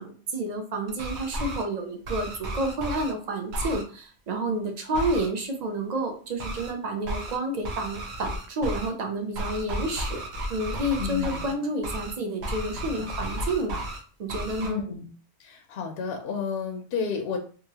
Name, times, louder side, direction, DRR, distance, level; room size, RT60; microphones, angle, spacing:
voice 1, 0.0-10.2 10.5-13.8 14.2-14.8, right 1 dB, 50° right, 4 dB, 0.5 m, -30 dB
sound 1, 0.9-1.6 2.0-3.1 3.5-3.8 4.9-5.3 6.4-6.7 7.0-7.4 7.6-8.9 9.3-11.5 11.8-12.1 12.4-14.0 14.3-14.7, equal, 65° right, 0.9 m, -33 dB
voice 2, 11.0-11.6 12.7-13.1 14.6-15.1 15.4-17.4, left 5 dB, 65° left, 4 dB, 0.6 m, -32 dB
3.0 x 2.4 x 2.8 m, 0.40 s
omnidirectional pair, 1.3 m